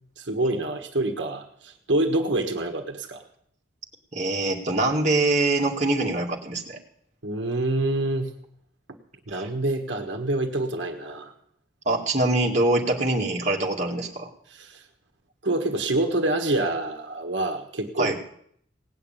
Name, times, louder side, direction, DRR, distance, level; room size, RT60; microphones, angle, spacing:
voice 1, 0.2-3.2 7.2-8.3 9.3-11.3 14.5-14.8 15.4-18.2, right 2 dB, 80° right, 4 dB, 1.5 m, -26 dB
voice 2, 4.1-6.8 9.3-9.4 11.9-14.3 18.0-18.2, right 2 dB, 40° right, -1 dB, 2.2 m, -24 dB
18.5 x 6.8 x 9.0 m, 0.67 s
head